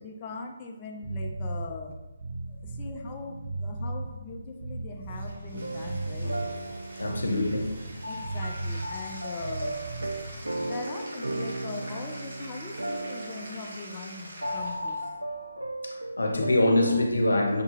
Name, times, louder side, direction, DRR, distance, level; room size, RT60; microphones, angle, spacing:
voice 1, 0.0-2.0 2.5-6.4 8.1-9.8 10.6-15.0, left 4 dB, 25° left, 1 dB, 0.4 m, -40 dB
sound 1, 1.0-10.6, right 2 dB, 35° right, 0.9 m, -36 dB
Bathtub (filling or washing), 5.1-15.1, right 1 dB, 60° right, 1.2 m, -45 dB
sound 2, 5.5-17.1, right 1 dB, 80° right, 0.4 m, -36 dB
voice 2, 7.0-7.7 15.8-17.6, left 1 dB, 75° left, 2 dB, 0.8 m, -24 dB
6.5 x 2.3 x 3.1 m, 1.0 s
figure-of-eight pair, 145°, 0 cm